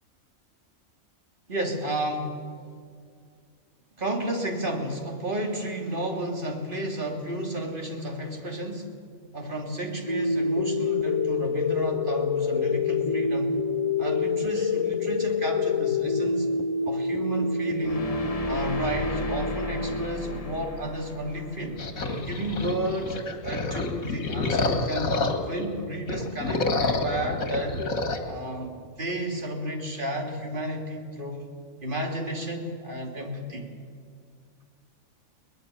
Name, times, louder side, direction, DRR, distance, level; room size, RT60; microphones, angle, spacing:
voice 1, 1.5-2.4 4.0-8.9 9.3-13.6 14.0-16.5 16.9-18.2 18.4-21.8 22.1-23.2 23.4-27.8 28.2-31.4 31.8-33.7, right 1 dB, 40° right, 1 dB, 3.1 m, -32 dB
sound 1, 10.1-20.1, left 4 dB, 55° left, 0.3 m, -27 dB
sound 2, 17.8-22.9, left 3 dB, 30° left, 1.2 m, -36 dB
sound 3, 21.8-25.6 26.0-28.2, left 3 dB, 80° left, 2.4 m, -28 dB
23.0 x 19.0 x 6.9 m, 2.2 s
omnidirectional pair, 1.4 m